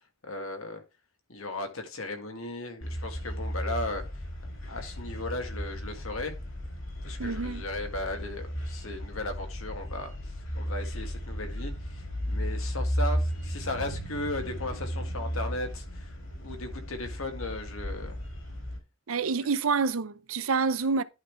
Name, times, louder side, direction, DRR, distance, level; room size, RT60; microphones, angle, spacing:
voice 1, 0.2-0.8 1.3-4.0 4.7-6.3 7.0-16.1 16.4-18.2, left 2 dB, 90° left, 2.0 m, -36 dB
sound 1, 2.8-18.8, equal, 70° left, 3.5 m, -35 dB
voice 2, 7.2-7.6 19.1-21.0, right 5 dB, 85° right, 0.6 m, -27 dB
11.0 x 3.8 x 4.6 m
head